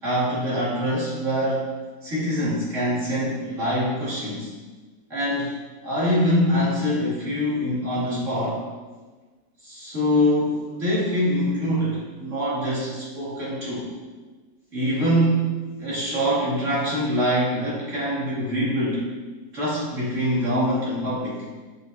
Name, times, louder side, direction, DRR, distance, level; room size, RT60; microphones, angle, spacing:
voice 1, 0.0-1.7 2.0-4.5 5.1-5.5 5.8-8.6 9.6-13.9 14.7-19.0 19.5-21.4, equal, 45° right, -8 dB, 2.5 m, -24 dB
7.8 x 6.9 x 2.6 m, 1.3 s
omnidirectional pair, 2.0 m